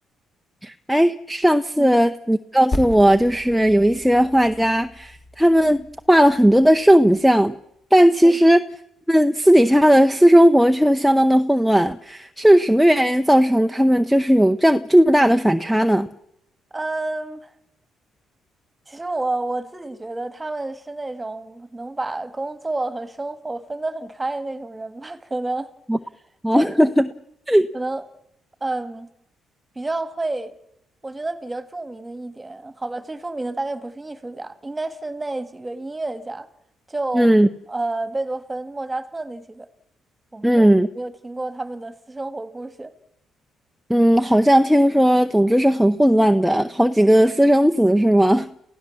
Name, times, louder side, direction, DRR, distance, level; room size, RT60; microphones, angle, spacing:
voice 1, 0.6-7.5 7.9-8.6 9.1-16.1 25.9-26.0 26.4-27.1 27.5-27.7 37.1-37.5 40.4-40.9 43.9-48.5, equal, ahead, 0.8 m, -16 dB
Percussion, 2.7-7.6, left 2 dB, 35° left, 3.1 m, -35 dB
voice 2, 16.7-17.5 18.9-25.7 26.5-26.7 27.7-28.1 28.6-29.1 29.8-30.5 31.0-36.5 36.9-37.3 37.7-39.7 40.3-40.7 41.0-42.9, right 2 dB, 15° right, 1.8 m, -29 dB
29.0 x 16.0 x 7.2 m
cardioid pair, 90°, 0 cm